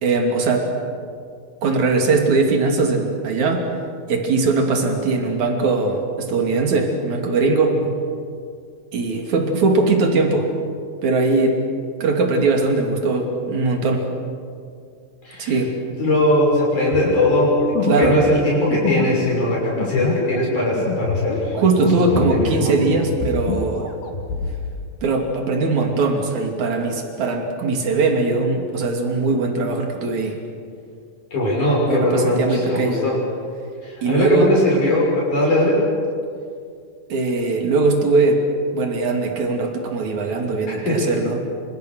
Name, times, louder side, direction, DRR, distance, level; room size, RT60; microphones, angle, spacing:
voice 1, 0.0-0.7 1.6-3.6 4.1-8.0 8.9-10.5 11.0-11.6 12.0-14.0 15.4-15.7 17.9-18.2 21.5-23.9 25.0-30.4 31.9-33.0 34.0-34.5 37.1-38.4 38.7-41.4, right 3 dB, 55° right, 3 dB, 4.0 m, -20 dB
voice 2, 15.2-15.6 16.0-22.7 31.3-33.2 33.8-35.8 40.7-41.1, left 1 dB, 55° left, -4 dB, 7.8 m, -20 dB
sound 1, 16.9-22.7 22.9-24.5, left 5 dB, 85° left, 4.1 m, -26 dB
29.0 x 26.5 x 6.4 m, 2.3 s
omnidirectional pair, 4.2 m